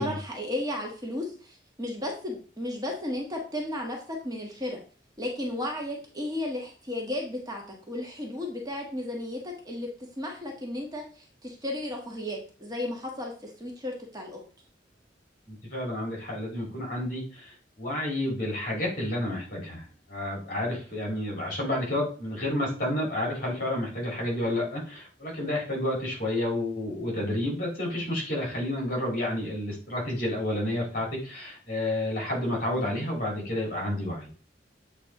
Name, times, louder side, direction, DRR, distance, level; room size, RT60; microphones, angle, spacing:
voice 1, 0.0-4.8 5.2-9.9 10.2-14.4 32.7-33.0, left 1 dB, 20° right, 0 dB, 1.4 m, -34 dB
voice 2, 15.5-34.4, left 1 dB, 55° left, -2 dB, 3.5 m, -30 dB
8.1 x 3.9 x 3.7 m, 0.38 s
head